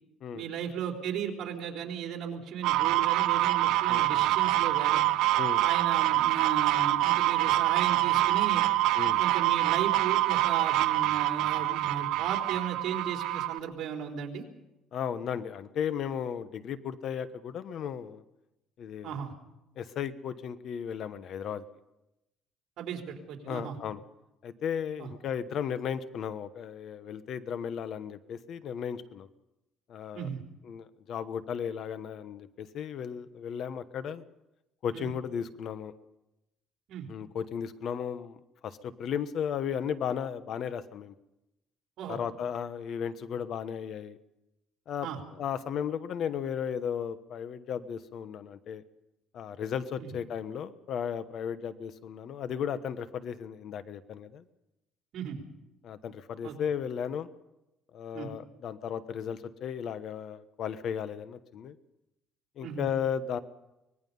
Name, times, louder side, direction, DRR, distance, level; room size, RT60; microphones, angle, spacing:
voice 1, 0.3-5.0 5.6-8.6 9.0-14.5 19.0-19.3 22.8-23.8 25.0-25.1 30.1-30.4 34.9-35.1 36.9-37.1 42.0-42.2 45.0-45.2 50.0-50.1 55.1-55.4 56.4-56.5 58.1-58.3 62.6-62.9, right 8 dB, 65° right, 2 dB, 3.8 m, -36 dB
sound 1, 2.6-13.6, right 16 dB, 90° right, 0.9 m, -26 dB
voice 2, 3.9-4.3 5.3-5.6 8.9-9.2 14.9-18.2 18.8-19.2 19.8-21.6 23.4-24.0 24.4-29.3 29.9-30.3 30.6-34.2 34.8-35.9 37.1-41.1 42.1-44.2 44.9-48.8 49.3-54.4 55.8-57.3 57.9-61.8 62.6-63.4, left 8 dB, 55° left, 12 dB, 1.2 m, -35 dB
24.5 x 20.5 x 5.5 m, 0.91 s
cardioid pair, 140°, 0 cm